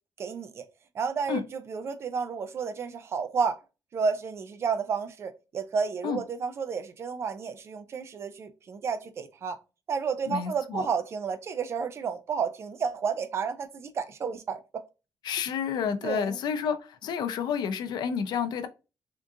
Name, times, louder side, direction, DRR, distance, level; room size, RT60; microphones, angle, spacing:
voice 1, 0.2-0.7 0.9-3.6 3.9-9.6 9.9-14.6 16.0-16.4, right 6 dB, 40° right, 0.4 m, -31 dB
voice 2, 10.3-10.9 15.2-18.7, left 7 dB, 85° left, 0.5 m, -30 dB
3.6 x 2.4 x 2.7 m
wide cardioid pair, 165°, 7 cm